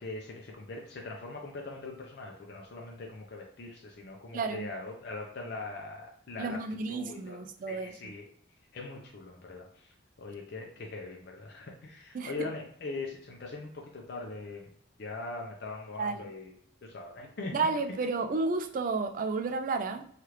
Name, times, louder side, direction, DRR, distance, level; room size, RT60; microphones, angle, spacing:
voice 1, 0.0-6.6 6.9-7.4 7.7-8.3 8.7-9.9 10.2-14.7 15.0-17.5, left 3 dB, 55° left, -1 dB, 0.5 m, -41 dB
voice 2, 4.3-4.7 6.4-7.9 12.1-12.5 16.0-16.3 17.5-20.0, right 4 dB, 45° right, 7 dB, 0.3 m, -32 dB
3.2 x 2.4 x 2.9 m, 0.63 s
head